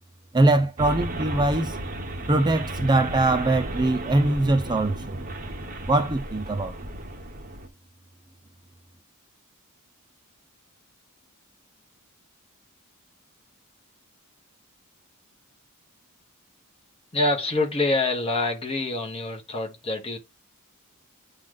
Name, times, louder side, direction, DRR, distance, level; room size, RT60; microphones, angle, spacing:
voice 1, 0.3-1.8 2.2-5.2 5.9-6.7, right 2 dB, 20° right, 0.6 m, -22 dB
sound 1, 0.8-7.7, right 1 dB, 40° right, 1.2 m, -34 dB
voice 2, 17.1-20.2, left 2 dB, 25° left, 1.6 m, -26 dB
8.4 x 3.3 x 3.9 m
head